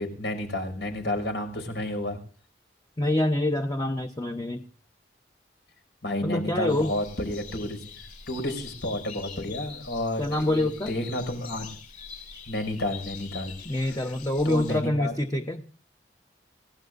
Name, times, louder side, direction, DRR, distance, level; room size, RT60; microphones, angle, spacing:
voice 1, 0.0-2.2 6.0-7.8 8.3-11.7 12.5-13.5 14.4-15.1, left 1 dB, 80° left, 5 dB, 5.7 m, -31 dB
voice 2, 3.0-4.6 6.2-6.9 10.2-10.9 13.6-15.6, left 1 dB, 20° left, 5 dB, 0.9 m, -26 dB
sound 1, 6.7-14.8, left 6 dB, 45° left, 6.0 m, -44 dB
29.5 x 16.5 x 2.6 m, 0.38 s
head